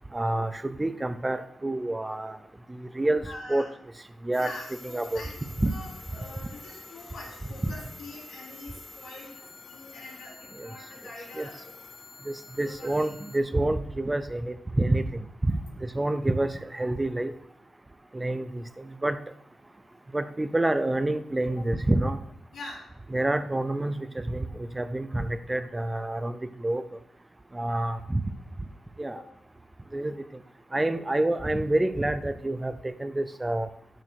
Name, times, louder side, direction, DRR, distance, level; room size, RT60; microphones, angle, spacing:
voice 1, 0.1-2.4 2.7-3.2 3.5-3.7 4.2-4.5 4.8-5.2 5.6-5.7 10.6-10.7 11.4-11.5 12.3-15.5 15.8-17.3 18.1-19.2 20.1-22.2 23.1-26.4 26.6-26.8 27.5-28.2 29.0-29.2 29.9-30.1 30.7-33.7, right 1 dB, 15° right, 11 dB, 0.4 m, -28 dB
voice 2, 3.2-3.8 4.4-5.3 5.7-11.7 12.6-13.1 21.6-21.7 22.5-22.9 29.1-29.3, left 2 dB, 75° left, -4 dB, 3.6 m, -44 dB
sound 1, 4.3-13.4, left 3 dB, 35° left, 1.1 m, -48 dB
6.6 x 6.2 x 6.3 m, 0.72 s
wide cardioid pair, 145°, 0 cm